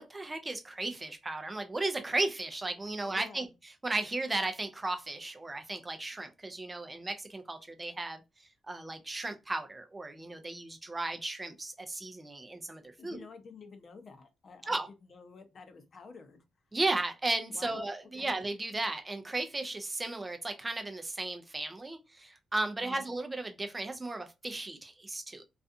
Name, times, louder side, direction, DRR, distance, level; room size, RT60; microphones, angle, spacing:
voice 1, 0.0-3.5 3.8-8.2 8.7-13.3 14.7-14.9 16.7-25.4, right 2 dB, 20° right, 0.4 m, -35 dB
voice 2, 3.0-3.5 13.0-16.4 17.5-18.3 22.8-23.1, left 4 dB, 50° left, 0.6 m, -51 dB
2.4 x 2.3 x 2.5 m
cardioid pair, 80°, 0 cm